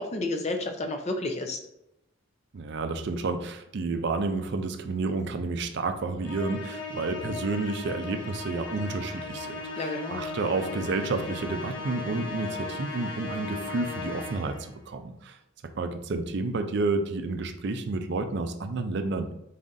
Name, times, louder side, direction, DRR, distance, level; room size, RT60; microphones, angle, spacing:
voice 1, 0.0-1.6 9.8-10.2, left 2 dB, 35° left, 5 dB, 0.5 m, -31 dB
voice 2, 2.5-15.4 15.8-19.3, right 3 dB, 60° right, 8 dB, 0.4 m, -30 dB
Musical instrument, 6.2-14.7, left 3 dB, 60° left, 1.0 m, -37 dB
4.1 x 3.7 x 2.6 m, 0.84 s
head